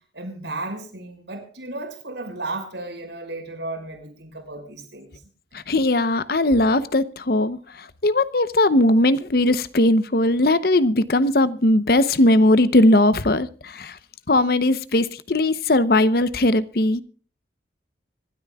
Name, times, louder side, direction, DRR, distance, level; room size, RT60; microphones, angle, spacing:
voice 1, 0.1-5.2, right 2 dB, 80° right, 5.7 m, -34 dB
voice 2, 5.7-7.6 8.0-13.9 14.3-17.0, left 1 dB, 55° left, 0.8 m, -19 dB
25.5 x 12.5 x 2.3 m
head